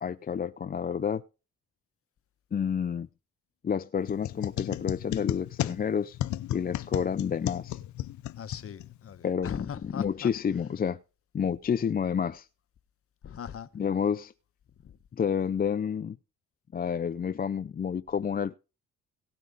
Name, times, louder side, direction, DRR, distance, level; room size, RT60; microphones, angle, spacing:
voice 1, 0.0-1.2 2.5-3.1 3.6-6.2 6.5-7.8 9.2-11.0 11.3-12.5 13.7-14.3 15.1-16.2 16.7-18.5, left 7 dB, 30° left, 0.5 m, -29 dB
sound 1, 4.1-9.2, left 13 dB, 75° left, 0.7 m, -34 dB
voice 2, 8.4-10.3 13.2-13.7 14.8-15.0, left 8 dB, 50° left, 1.1 m, -40 dB
17.5 x 8.8 x 4.0 m
cardioid pair, 90°, 30 cm